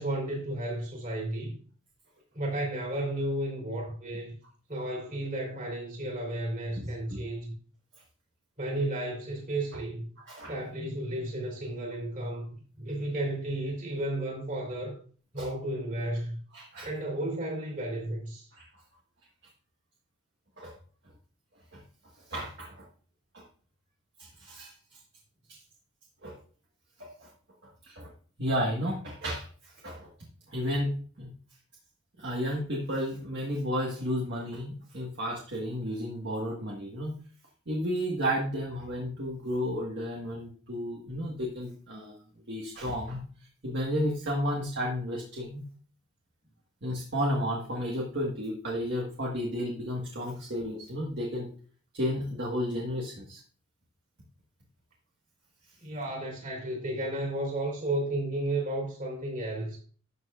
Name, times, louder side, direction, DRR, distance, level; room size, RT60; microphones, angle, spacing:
voice 1, 0.0-1.6 2.3-4.3 4.7-7.5 8.6-10.1 10.5-12.5 12.8-15.0 15.3-16.4 16.8-18.5 55.8-59.8, right 1 dB, 40° right, 3.5 m, -33 dB
voice 2, 6.8-7.2 10.3-10.6 15.4-15.5 16.5-16.9 18.5-18.7 20.6-20.7 21.7-21.8 22.3-22.8 23.3-23.4 24.2-24.7 25.5-25.6 26.2-26.4 27.0-27.3 27.9-28.1 28.4-30.1 30.5-31.3 32.2-37.1 37.7-42.1 42.5-43.2 43.6-45.6 46.8-51.5 51.9-53.4, equal, 55° right, 1.7 m, -32 dB
12.5 x 6.9 x 2.5 m
head